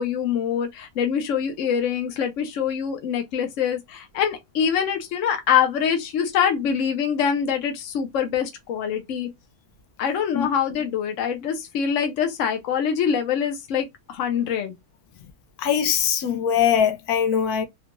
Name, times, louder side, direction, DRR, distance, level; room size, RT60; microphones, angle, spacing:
voice 1, 0.0-9.3 10.0-14.7, left 8 dB, 60° left, 1.0 m, -24 dB
voice 2, 15.6-17.7, left 8 dB, 85° left, 1.1 m, -21 dB
3.6 x 2.3 x 2.9 m
omnidirectional pair, 1.6 m